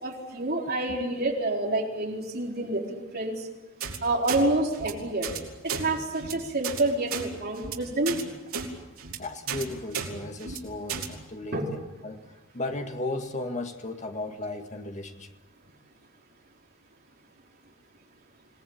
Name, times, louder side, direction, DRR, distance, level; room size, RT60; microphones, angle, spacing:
voice 1, 0.0-3.5 4.0-5.3 5.6-8.2 11.5-11.7, right 2 dB, 45° right, 0 dB, 4.1 m, -28 dB
sound 1, 3.8-4.0 4.3-4.4 4.7-4.9 5.2-5.4 5.7-5.8 6.1-6.3 6.6-6.8 7.1-7.3 7.6-7.8 8.1-8.2 8.5-8.7 9.0-9.2 9.5-9.6 9.9-10.1 10.4-10.6 10.9-11.1, right 6 dB, 70° right, 3.8 m, -33 dB
voice 2, 9.2-12.2 12.5-15.3, left 2 dB, 35° left, 5 dB, 2.0 m, -35 dB
26.0 x 19.0 x 8.9 m, 1.1 s
head